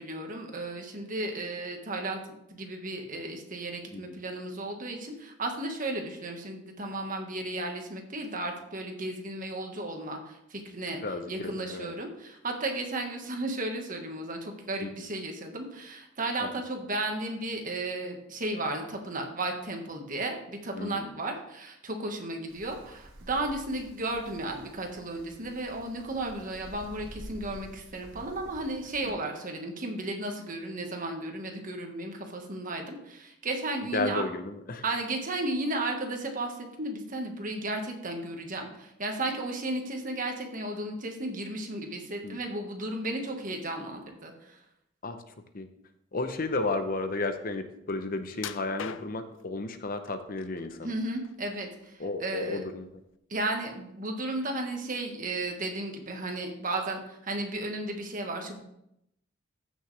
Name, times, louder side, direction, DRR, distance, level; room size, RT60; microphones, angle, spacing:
voice 1, 0.0-2.2 2.5-11.0 11.3-34.2 34.8-44.6 50.8-52.6 53.3-58.6, right 2 dB, 45° right, 3 dB, 1.6 m, -34 dB
voice 2, 11.0-11.9 14.8-14.9 16.4-16.5 20.7-21.1 29.0-29.1 33.9-34.8 42.2-42.4 45.0-45.2 45.5-45.7 46.1-50.9 52.0-52.9, left 2 dB, 45° left, 8 dB, 0.8 m, -33 dB
Wind, 22.5-29.1, right 1 dB, 75° right, 2.0 m, -49 dB
sound 1, 48.4-49.4 50.1-50.7 51.1-52.1 52.4-52.6 53.1-53.2, left 7 dB, 75° left, 0.5 m, -41 dB
15.0 x 6.4 x 3.3 m, 0.79 s
head